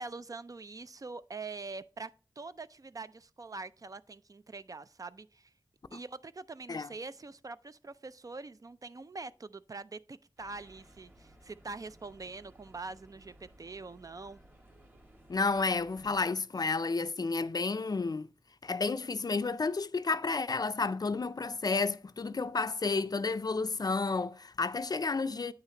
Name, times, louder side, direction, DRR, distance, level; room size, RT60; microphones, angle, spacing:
voice 1, 0.0-2.1 2.4-5.5 5.9-14.4, right 3 dB, 45° right, 0.4 m, -44 dB
sound 1, 10.4-16.2, right 1 dB, 25° right, 2.1 m, -58 dB
voice 2, 15.3-18.3 18.6-25.5, left 4 dB, 50° left, 0.4 m, -31 dB
8.9 x 5.7 x 2.9 m
wide cardioid pair, 80°, 8 cm